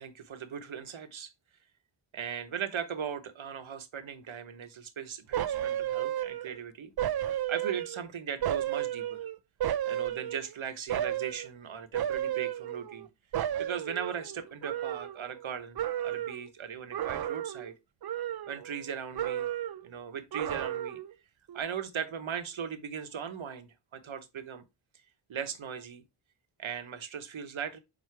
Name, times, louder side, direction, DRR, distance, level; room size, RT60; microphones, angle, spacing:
voice 1, 0.0-1.3 2.1-6.9 7.5-9.3 9.9-13.1 13.6-17.7 18.5-19.5 19.8-21.0 21.5-24.6 25.3-26.0 26.6-27.8, right 7 dB, 70° right, 1.1 m, -38 dB
sound 1, 5.3-6.6 7.0-8.1 8.4-10.5 10.9-11.5 11.9-13.1 13.3-15.5 15.8-16.4 16.9-17.7 18.0-18.9 19.1-19.9 20.3-21.1 21.5-21.6, right 11 dB, 50° right, 0.5 m, -33 dB
7.5 x 2.8 x 4.7 m
wide cardioid pair, 95°, 49 cm